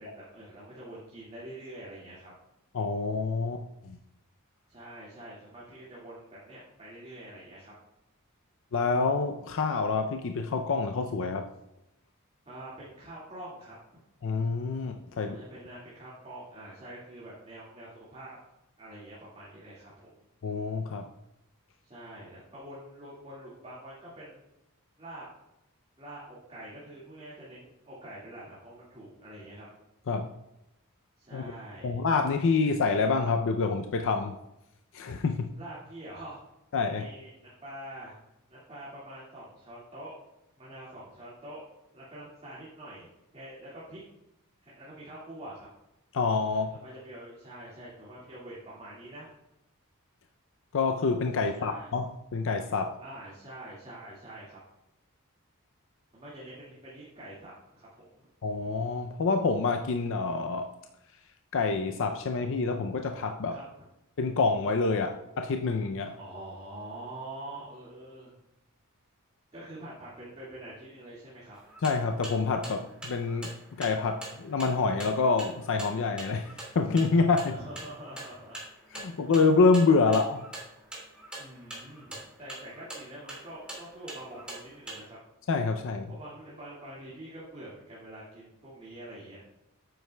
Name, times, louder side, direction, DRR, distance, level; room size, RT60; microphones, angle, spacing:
voice 1, 0.0-2.3 4.7-7.7 12.5-13.8 15.2-18.4 18.8-20.2 21.8-24.4 25.0-25.2 26.0-29.7 31.2-32.0 35.5-36.4 37.0-38.2 38.5-40.2 40.6-41.6 41.9-44.0 44.6-45.7 46.5-49.3 51.5-51.9 53.0-54.6 56.1-57.9 63.5-63.6 66.2-68.3 69.5-71.6 77.5-78.6 81.4-85.2 86.1-89.5, right 1 dB, 30° right, -8 dB, 2.0 m, -45 dB
voice 2, 2.7-4.0 8.7-11.4 14.2-15.4 20.4-21.1 30.1-30.3 31.3-31.4 31.8-34.3 34.9-35.5 36.7-37.1 46.1-46.7 50.7-52.1 52.3-52.9 58.4-60.7 61.5-63.6 64.2-66.2 71.8-73.5 73.8-77.5 78.9-80.4 85.5-86.1, left 4 dB, 60° left, 5 dB, 0.5 m, -27 dB
sound 1, 71.6-85.0, right 1 dB, 5° right, 2.2 m, -43 dB
9.4 x 7.8 x 2.2 m, 0.90 s
head